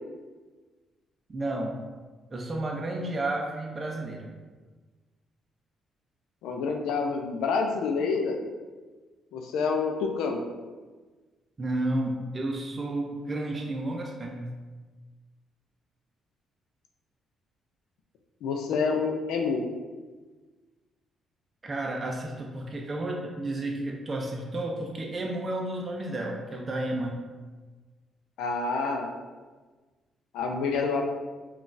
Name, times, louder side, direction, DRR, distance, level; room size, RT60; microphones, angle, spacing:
voice 1, 1.3-1.8 2.3-4.3 11.6-14.5 21.6-27.2, right 1 dB, 30° right, 0 dB, 0.4 m, -32 dB
voice 2, 6.4-8.4 9.3-10.4 18.4-19.7 28.4-29.1 30.3-31.0, left 4 dB, 85° left, 3 dB, 0.4 m, -28 dB
3.7 x 2.3 x 2.5 m, 1.3 s
cardioid pair, 90°, 0 cm